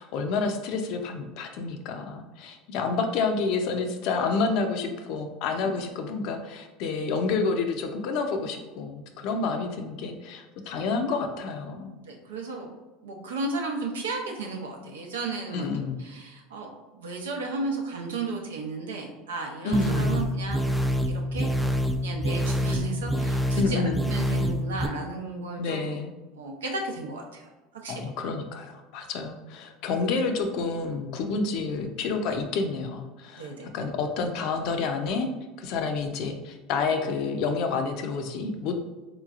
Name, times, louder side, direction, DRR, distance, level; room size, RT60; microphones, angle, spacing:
voice 1, 0.0-11.9 15.5-16.0 19.6-20.2 23.5-24.0 25.6-26.1 27.9-35.3 35.6-38.8, left 4 dB, 60° left, 5 dB, 0.5 m, -29 dB
voice 2, 12.1-12.7 13.0-15.7 16.0-16.7 16.9-20.6 21.1-21.5 22.0-25.9 26.4-27.5 27.8-28.0 33.4-33.7, right 3 dB, 90° right, 1 dB, 0.6 m, -34 dB
sound 1, 19.7-24.9, equal, ahead, 0.4 m, -26 dB
3.8 x 3.0 x 2.4 m, 1.2 s
hypercardioid pair, 85°, 0 cm